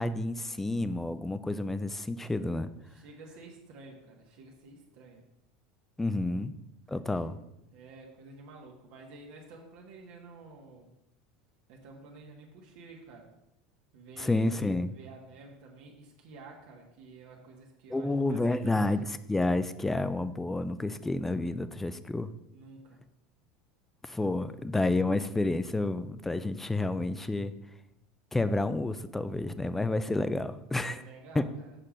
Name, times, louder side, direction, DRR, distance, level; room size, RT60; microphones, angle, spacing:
voice 1, 0.0-2.7 6.0-6.5 6.9-7.4 14.2-14.9 17.9-22.3 24.0-27.5 28.3-31.0 31.4-31.5, left 2 dB, 10° left, 13 dB, 0.4 m, -30 dB
voice 2, 2.9-5.2 7.2-7.3 7.7-10.9 11.7-13.3 13.9-14.6 14.8-18.9 22.5-23.0 30.7-31.7, right 3 dB, 70° right, -1 dB, 1.5 m, -50 dB
6.7 x 5.7 x 5.0 m, 0.85 s
supercardioid pair, 125°, 3 cm